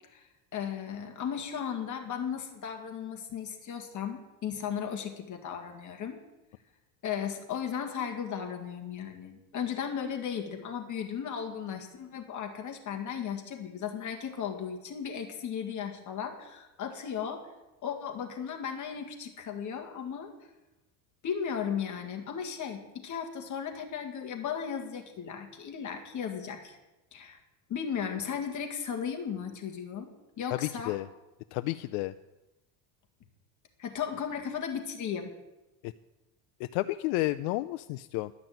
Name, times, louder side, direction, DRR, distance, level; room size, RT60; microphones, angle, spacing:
voice 1, 0.5-6.2 7.0-17.4 17.8-20.3 21.2-26.8 27.1-27.4 27.7-30.1 30.4-31.0 33.8-35.3, left 7 dB, 40° left, 3 dB, 2.0 m, -36 dB
voice 2, 30.5-31.1 31.5-32.1 35.8-35.9 36.6-38.3, left 18 dB, 85° left, 12 dB, 0.5 m, -31 dB
12.0 x 6.1 x 9.2 m, 1.0 s
cardioid pair, 135°, 45 cm